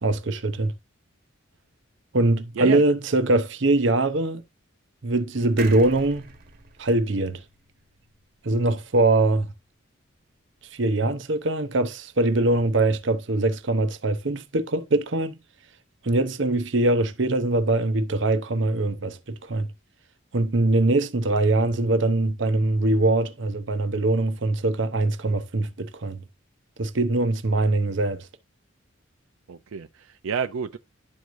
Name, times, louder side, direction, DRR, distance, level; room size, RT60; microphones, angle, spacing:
voice 1, 0.0-0.7 2.1-4.4 5.0-6.3 6.8-7.4 8.4-9.5 10.7-15.4 16.0-19.7 20.3-26.2 26.8-28.3, right 2 dB, 60° right, 0.8 m, -22 dB
sound 1, 5.6-9.1 9.4-9.5 9.7-9.8, right 4 dB, 45° right, 1.2 m, -43 dB
voice 2, 29.5-30.8, right 5 dB, 85° right, 0.5 m, -29 dB
11.5 x 4.7 x 2.6 m
head